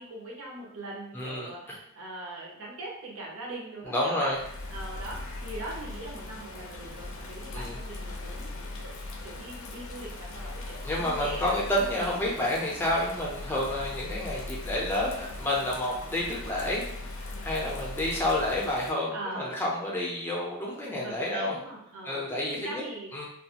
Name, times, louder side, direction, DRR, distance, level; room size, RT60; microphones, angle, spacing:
voice 1, 0.0-4.3 4.7-9.0 9.2-11.6 12.0-12.2 13.5-13.7 17.6-17.8 19.1-19.6 20.9-23.1, right 2 dB, 65° right, -2 dB, 0.7 m, -41 dB
voice 2, 1.1-1.8 3.8-4.4 7.5-7.8 10.8-16.9 17.1-21.6 22.0-22.8 23.1-23.3, left 1 dB, 10° left, -4 dB, 0.5 m, -29 dB
Bird vocalization bird call bird song / Rain, 4.3-18.9, left 2 dB, 60° left, 0.4 m, -39 dB
2.4 x 2.3 x 2.8 m, 0.76 s
head